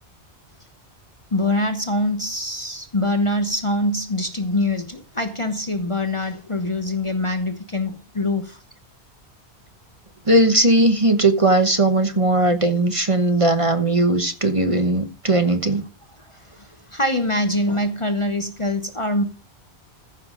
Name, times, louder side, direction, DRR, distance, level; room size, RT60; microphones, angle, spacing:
voice 1, 1.3-8.6 16.9-19.2, left 1 dB, 30° left, 0.9 m, -24 dB
voice 2, 10.3-15.8, right 2 dB, 30° right, 1.1 m, -18 dB
14.5 x 5.8 x 5.1 m
omnidirectional pair, 1.1 m